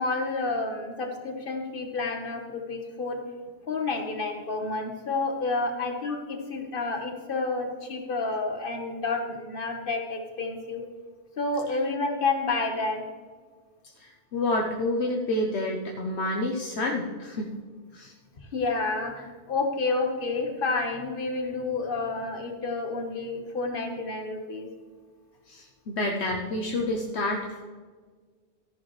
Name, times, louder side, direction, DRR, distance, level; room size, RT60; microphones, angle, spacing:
voice 1, 0.0-3.2 3.7-10.8 11.4-13.0 18.5-24.7, left 3 dB, 50° left, 3 dB, 1.5 m, -30 dB
voice 2, 14.0-17.5 17.9-18.1 25.5-27.6, left 1 dB, 70° left, 1 dB, 1.2 m, -29 dB
13.5 x 10.5 x 3.2 m, 1.5 s
omnidirectional pair, 1.1 m